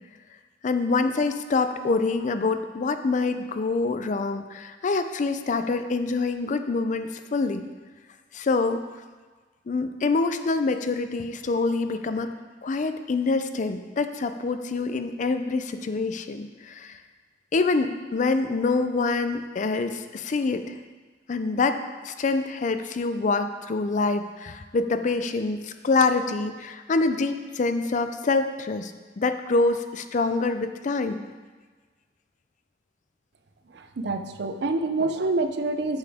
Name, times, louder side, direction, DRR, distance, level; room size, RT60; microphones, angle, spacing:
voice 1, 0.6-7.7 8.3-8.8 9.7-12.3 12.6-17.0 17.5-20.7 21.3-31.2, left 3 dB, 45° left, 9 dB, 0.4 m, -26 dB
voice 2, 33.7-36.0, right 2 dB, 65° right, 8 dB, 0.5 m, -27 dB
8.1 x 6.9 x 3.5 m, 1.4 s
head